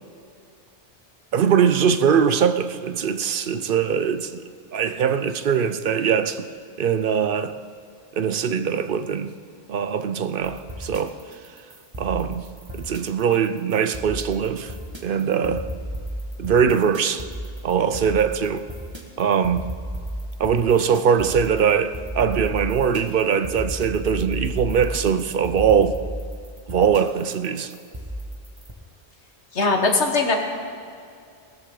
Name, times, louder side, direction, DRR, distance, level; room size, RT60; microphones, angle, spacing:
voice 1, 1.3-4.4 4.7-6.5 6.8-7.5 8.1-9.3 9.7-11.1 12.0-12.4 12.7-14.7 15.0-15.7 16.4-17.3 17.6-18.6 19.2-19.6 20.4-26.0 26.7-27.7, right 7 dB, 60° right, 0.7 m, -21 dB
sound 1, 10.4-28.7, equal, 25° right, 1.5 m, -33 dB
voice 2, 29.5-30.4, left 3 dB, 75° left, 1.8 m, -20 dB
18.5 x 13.5 x 3.8 m
omnidirectional pair, 1.2 m